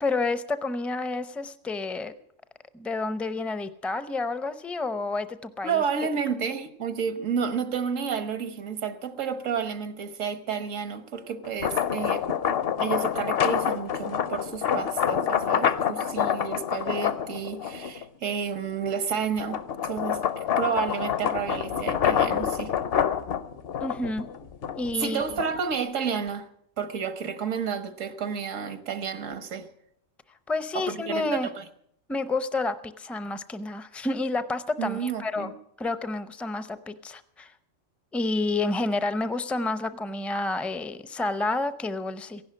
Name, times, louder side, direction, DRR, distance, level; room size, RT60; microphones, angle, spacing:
voice 1, 0.0-2.1 2.7-5.8 23.8-24.2 24.8-25.2 30.5-31.5 32.1-35.5 35.8-37.5 38.1-42.4, left 3 dB, ahead, 0.4 m, -29 dB
voice 2, 5.6-12.2 12.8-22.7 25.0-26.5 26.8-29.7 30.7-31.6 34.8-35.5, right 6 dB, 90° right, 1.6 m, -31 dB
sound 1, 11.4-18.0 18.6-25.8, left 9 dB, 55° left, 0.9 m, -27 dB
16.0 x 11.0 x 7.6 m
omnidirectional pair, 1.3 m